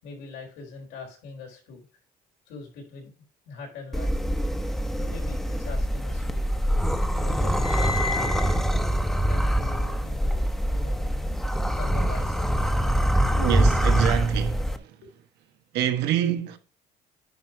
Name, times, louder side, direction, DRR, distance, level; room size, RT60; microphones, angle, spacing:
voice 1, 0.0-1.8 2.5-3.1 3.5-4.2 4.9-6.5 7.1-8.3 9.3-11.1 11.7-12.5 15.0-15.1, left 4 dB, 90° left, 4.0 m, -42 dB
sound 1, 3.9-14.8, equal, ahead, 0.9 m, -24 dB
sound 2, 6.3-6.7 7.0-10.4, left 4 dB, 25° left, 0.5 m, -36 dB
voice 2, 13.3-15.0 15.7-16.6, right 9 dB, 85° right, 1.2 m, -26 dB
10.0 x 4.6 x 4.7 m
cardioid pair, 110°, 17 cm